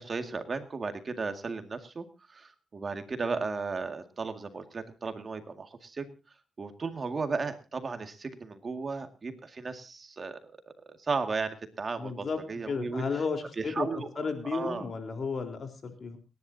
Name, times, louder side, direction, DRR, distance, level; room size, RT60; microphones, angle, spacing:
voice 1, 0.0-6.1 6.6-10.4 10.9-13.0 13.6-14.1 14.4-14.9, right 4 dB, 40° right, 7 dB, 2.0 m, -35 dB
voice 2, 12.0-12.4 12.7-16.2, left 5 dB, 50° left, 5 dB, 3.7 m, -33 dB
29.5 x 11.0 x 2.7 m, 0.30 s
cardioid pair, 95°, 0 cm